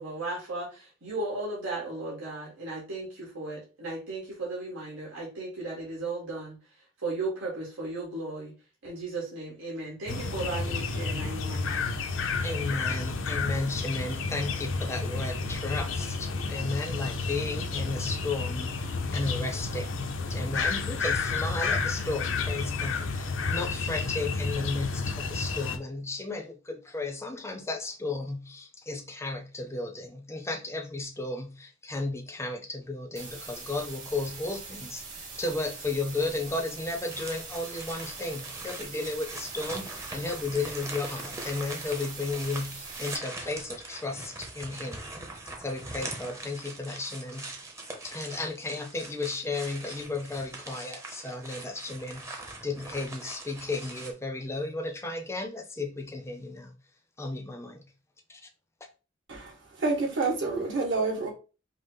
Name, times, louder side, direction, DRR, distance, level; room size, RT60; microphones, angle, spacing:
voice 1, 0.0-6.6 7.0-8.5 8.8-11.8, right 2 dB, 85° right, 1.4 m, -35 dB
sound 1, 10.1-25.8, left 4 dB, 75° left, 0.6 m, -31 dB
voice 2, 12.4-20.0 20.3-45.0 45.6-47.5 48.0-56.7 57.2-57.9 58.3-58.5, left 3 dB, 15° left, 0.5 m, -34 dB
sound 2, 33.2-43.2, right 4 dB, 40° right, 1.3 m, -43 dB
sound 3, 37.1-54.1, right 2 dB, 15° right, 0.7 m, -42 dB
voice 3, 59.3-61.3, right 3 dB, 70° right, 2.0 m, -28 dB
5.2 x 2.0 x 3.8 m
head